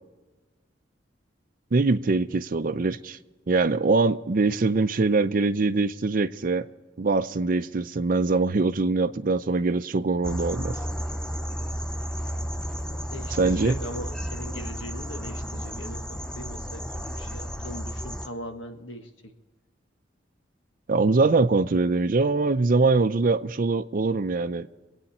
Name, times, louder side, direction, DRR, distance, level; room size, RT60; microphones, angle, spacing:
voice 1, 1.7-3.2 3.5-6.7 7.0-10.7 13.3-13.8 20.9-24.7, right 3 dB, 45° right, 0.5 m, -23 dB
sound 1, 10.2-18.3, equal, 5° left, 0.5 m, -33 dB
voice 2, 13.1-19.3, equal, 90° left, 1.5 m, -40 dB
25.0 x 8.9 x 4.3 m
head